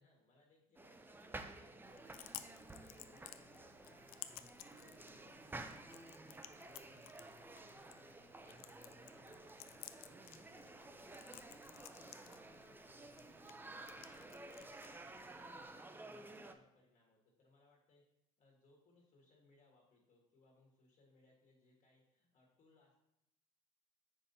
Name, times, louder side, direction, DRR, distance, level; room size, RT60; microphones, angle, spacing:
voice 1, 0.0-2.3 2.7-5.6 5.9-10.3 10.6-13.6 13.9-18.0 18.4-23.0, left 2 dB, 50° left, -1 dB, 1.5 m, -70 dB
sound 1, 0.7-16.5, right 2 dB, 10° right, 0.5 m, -53 dB
Chewing mastication, 1.8-15.8, left 13 dB, 65° left, 0.4 m, -57 dB
6.7 x 5.3 x 2.7 m, 0.82 s
supercardioid pair, 85°, 16 cm